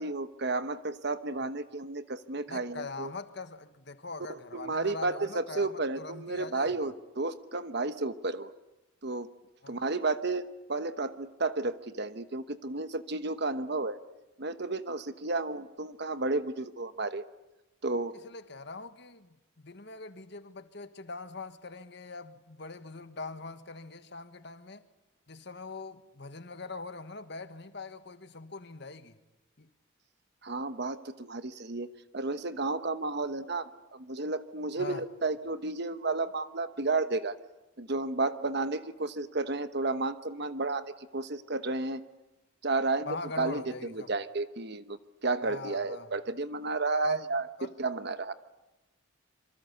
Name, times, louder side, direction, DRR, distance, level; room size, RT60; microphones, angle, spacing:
voice 1, 0.0-3.1 4.5-8.5 9.0-9.3 9.7-14.0 14.4-17.2 17.8-18.1 30.4-37.4 37.8-42.0 42.6-47.5 47.8-48.3, right 3 dB, 55° right, 1.1 m, -32 dB
voice 2, 2.5-6.9 9.6-9.8 18.1-24.8 25.3-29.2 29.6-29.7 34.8-35.0 43.0-44.1 45.4-46.1 47.0-47.2 47.6-47.7, left 3 dB, 55° left, 1.5 m, -42 dB
26.5 x 24.0 x 8.4 m
head